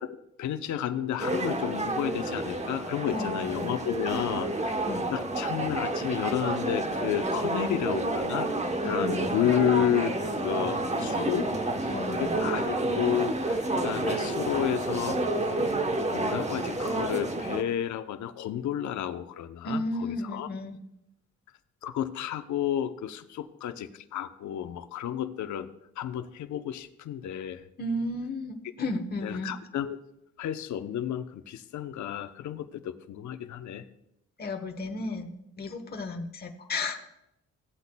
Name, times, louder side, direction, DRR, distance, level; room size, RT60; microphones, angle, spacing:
voice 1, 0.0-4.7 5.1-8.5 8.8-11.5 11.8-15.2 16.1-20.5 21.8-25.7 26.0-27.6 29.2-30.0 30.4-33.8, left 10 dB, 70° left, 9 dB, 0.8 m, -31 dB
sound 1, 1.2-17.6, right 2 dB, 20° right, 1.0 m, -29 dB
voice 2, 3.1-3.7 4.9-5.1 8.8-9.3 11.9-12.4 19.6-20.8 27.8-29.5 34.4-37.0, left 2 dB, 30° left, 4 dB, 1.1 m, -34 dB
17.0 x 8.2 x 2.3 m, 0.81 s
cardioid pair, 90°, 30 cm